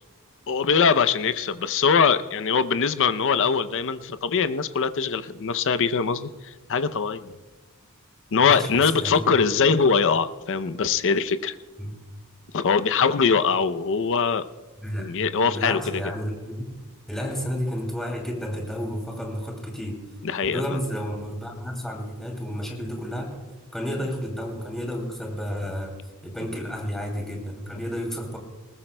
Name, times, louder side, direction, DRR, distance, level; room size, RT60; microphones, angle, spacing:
voice 1, 0.5-7.3 8.3-11.5 12.5-14.5 15.0-16.0 20.2-20.8, left 5 dB, 60° left, 12 dB, 0.6 m, -22 dB
voice 2, 8.4-9.2 11.8-11.9 14.8-15.1 15.4-16.8 17.1-20.0 20.5-26.0 26.2-28.4, equal, ahead, 0 dB, 2.6 m, -31 dB
20.0 x 20.0 x 2.2 m, 1.3 s
head